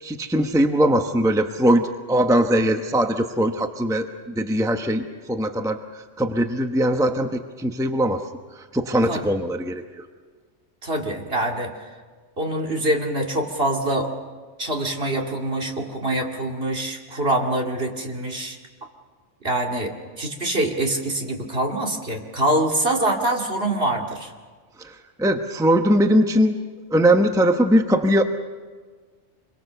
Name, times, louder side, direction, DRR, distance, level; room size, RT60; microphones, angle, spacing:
voice 1, 0.0-5.8 6.2-8.2 8.7-9.8 24.8-26.5 26.9-28.2, right 1 dB, 5° right, 6 dB, 1.0 m, -20 dB
voice 2, 10.8-11.9 12.4-14.1 14.6-18.6 19.4-24.3, right 1 dB, 50° right, 1 dB, 2.7 m, -25 dB
26.5 x 22.5 x 6.9 m, 1.5 s
omnidirectional pair, 1.3 m